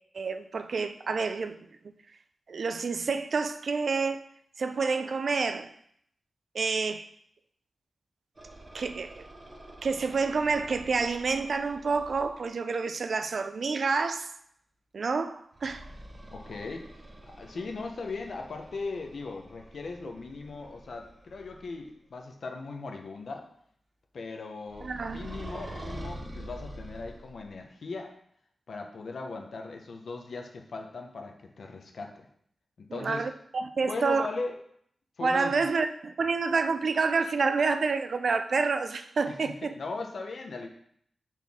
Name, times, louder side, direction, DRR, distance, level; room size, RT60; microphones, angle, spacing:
voice 1, 0.1-1.6 2.5-4.2 4.6-5.7 6.5-7.1 8.7-9.2 9.8-14.3 14.9-15.8 24.8-25.3 32.9-34.3 35.2-39.7, right 4 dB, 65° right, 0.4 m, -28 dB
sound 1, 8.4-12.4 15.5-21.9 24.7-27.5, right 1 dB, 30° right, 0.9 m, -46 dB
voice 2, 16.3-16.9 17.4-23.4 24.1-28.1 28.7-32.1 32.8-33.3 33.8-34.6 35.2-35.6 39.3-40.7, left 3 dB, 70° left, 0.9 m, -38 dB
6.0 x 4.4 x 3.6 m
wide cardioid pair, 120°, 0 cm